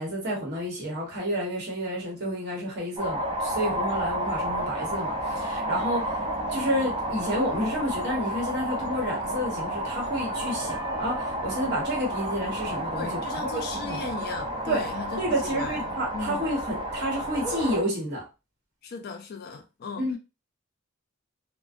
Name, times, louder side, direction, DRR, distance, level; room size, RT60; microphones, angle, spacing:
voice 1, 0.0-6.2 6.5-14.0 14.7-14.8 15.2-18.2 20.0-20.2, equal, 55° right, 1.0 m, -30 dB
sound 1, 3.0-17.8, right 1 dB, 25° right, 0.4 m, -31 dB
voice 2, 12.9-16.5 18.8-20.1, left 4 dB, 50° left, 0.3 m, -37 dB
2.5 x 2.1 x 2.4 m
head